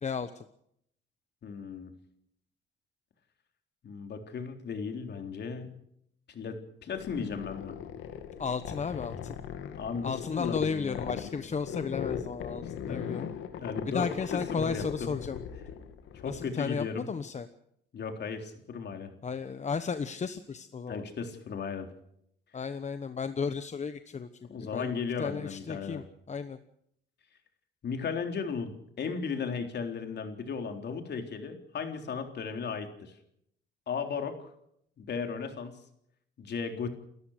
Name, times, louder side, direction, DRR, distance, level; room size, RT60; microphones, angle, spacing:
voice 1, 0.0-0.4 8.4-9.4 10.0-13.3 13.8-15.4 16.2-17.5 19.2-21.1 22.5-24.3 24.7-24.9 25.2-26.6, left 5 dB, 35° left, 10 dB, 1.1 m, -34 dB
voice 2, 1.4-1.9 3.8-5.7 6.3-7.7 9.7-11.4 12.9-13.1 13.6-15.2 16.2-17.1 17.9-19.1 20.9-21.9 24.5-26.0 27.8-33.1 33.9-34.4 35.0-35.8 36.4-36.9, left 5 dB, 60° left, 5 dB, 3.7 m, -36 dB
sound 1, 6.9-16.4, left 8 dB, 85° left, 2.2 m, -39 dB
29.0 x 14.0 x 6.5 m, 0.73 s
cardioid pair, 90°, 20 cm